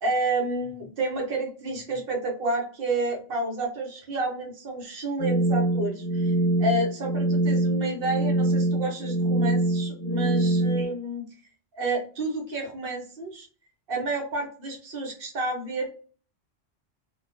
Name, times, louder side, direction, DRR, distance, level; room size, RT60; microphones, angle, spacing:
voice 1, 0.0-6.3 6.6-11.3 11.7-13.5 13.9-15.9, right 2 dB, 60° right, 1 dB, 0.9 m, -30 dB
sound 1, 5.2-10.8, right 2 dB, 30° left, 1.0 m, -24 dB
2.3 x 2.2 x 2.4 m, 0.39 s
omnidirectional pair, 1.2 m